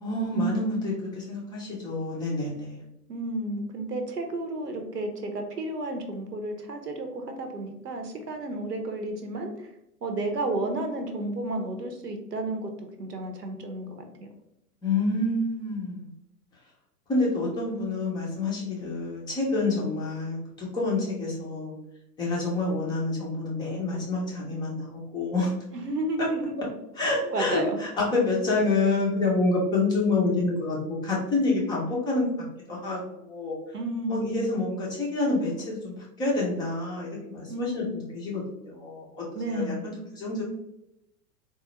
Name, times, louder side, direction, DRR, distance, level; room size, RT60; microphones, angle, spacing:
voice 1, 0.0-2.8 14.8-16.1 17.1-21.8 22.2-25.5 26.2-26.3 27.0-32.3 32.7-33.6 34.1-37.9 38.1-40.4, left 2 dB, 10° left, -4 dB, 0.5 m, -28 dB
voice 2, 3.1-9.7 10.0-13.9 14.2-14.3 25.7-26.6 27.2-27.8 33.7-34.5 37.5-38.0 39.3-39.9, right 2 dB, 80° right, 5 dB, 0.9 m, -32 dB
4.0 x 2.4 x 2.9 m, 0.84 s
figure-of-eight pair, 105°, 47 cm